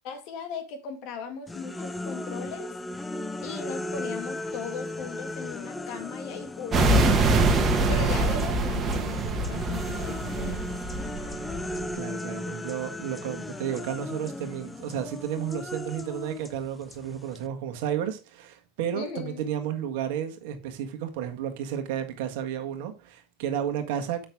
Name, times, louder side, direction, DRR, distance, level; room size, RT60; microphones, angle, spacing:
voice 1, 0.0-2.8 3.4-10.7 18.9-19.4, left 5 dB, 55° left, 2.0 m, -38 dB
sound 1, 1.5-8.6 8.9-17.5, left 2 dB, 10° left, 0.7 m, -37 dB
sound 2, 6.7-11.9, right 2 dB, 25° right, 1.7 m, -24 dB
voice 2, 11.8-24.3, right 9 dB, 65° right, 1.6 m, -32 dB
7.8 x 6.0 x 3.5 m
hypercardioid pair, 105°, 0 cm